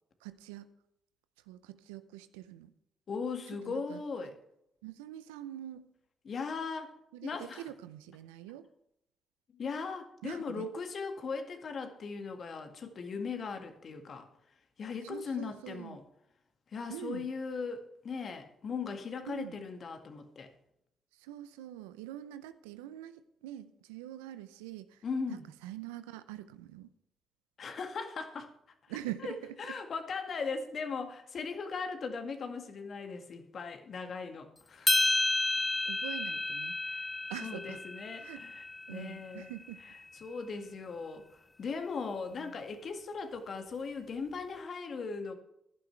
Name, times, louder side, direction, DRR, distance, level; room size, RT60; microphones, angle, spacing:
voice 1, 0.2-0.7 1.5-2.7 3.6-4.0 4.8-5.9 7.1-8.7 10.2-10.7 15.0-16.0 16.9-17.3 19.3-19.6 21.2-25.0 25.3-26.9 28.9-29.7 35.9-36.7 37.3-37.8 38.2-38.4 38.9-39.8 42.4-42.5, right 13 dB, 90° right, 13 dB, 0.6 m, -44 dB
voice 2, 3.1-4.4 6.2-7.7 9.5-14.3 14.8-16.0 16.7-20.5 25.0-25.5 27.6-28.5 29.2-35.1 36.8-37.1 37.4-39.5 39.8-39.9 40.2-45.3, left 4 dB, 55° left, 6 dB, 1.9 m, -39 dB
sound 1, 34.9-39.3, left 2 dB, 20° left, 0.6 m, -31 dB
15.5 x 11.5 x 3.3 m, 0.81 s
hypercardioid pair, 45°, 0 cm